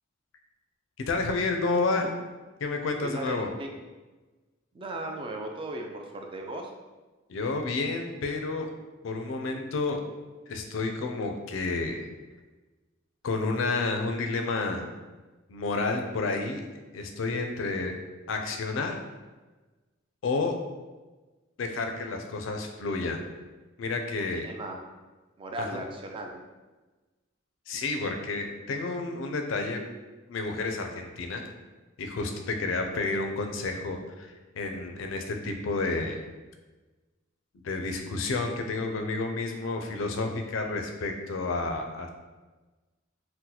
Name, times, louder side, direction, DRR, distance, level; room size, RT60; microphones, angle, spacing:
voice 1, 1.0-2.1 2.6-3.5 7.3-8.7 9.0-10.0 10.5-12.1 13.2-14.9 15.5-16.6 16.9-17.9 18.3-18.9 20.2-20.6 21.6-23.2 23.8-24.5 25.6-25.8 27.7-29.8 30.3-31.5 32.0-34.3 34.5-36.2 37.6-42.1, left 3 dB, 70° left, 4 dB, 0.4 m, -30 dB
voice 2, 3.1-3.7 4.7-6.7 24.2-24.9 25.4-26.4, right 1 dB, 25° right, 2 dB, 0.3 m, -37 dB
2.8 x 2.1 x 3.8 m, 1.2 s
head